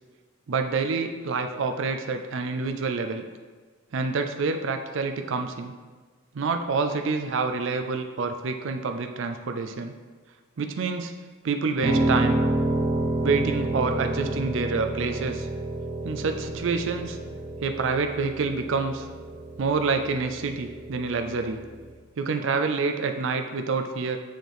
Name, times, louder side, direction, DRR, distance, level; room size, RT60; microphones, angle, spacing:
voice 1, 0.5-3.2 3.9-5.7 6.3-9.9 10.6-11.1 11.4-12.4 13.2-15.5 16.0-17.2 17.6-19.1 19.6-21.6 22.2-24.2, right 4 dB, 65° right, 6 dB, 0.4 m, -27 dB
Piano, 11.8-21.9, right 2 dB, 40° right, 1.0 m, -29 dB
6.5 x 6.4 x 3.4 m, 1.4 s
head